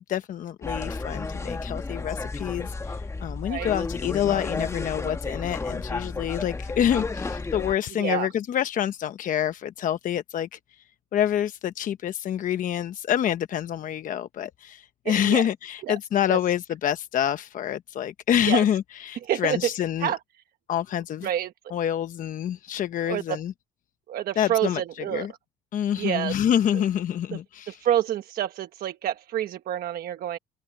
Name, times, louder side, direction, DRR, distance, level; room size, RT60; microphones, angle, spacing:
voice 1, 0.1-10.6 11.1-20.1 20.7-21.3 21.7-23.5 24.4-24.8 25.1-25.3 25.7-27.8, left 10 dB, 50° left, 0.9 m, -27 dB
sound 1, 0.6-7.8, left 3 dB, 15° left, 1.1 m, -32 dB
voice 2, 7.9-8.3 15.0-15.4 15.9-16.0 16.3-16.4 18.4-18.6 19.2-19.7 20.0-20.2 21.2-21.5 23.1-23.4 24.1-25.3 26.0-26.4 26.7-26.8 27.3-27.4 27.7-30.4, right 11 dB, 60° right, 1.2 m, -28 dB
cardioid pair, 110°, 17 cm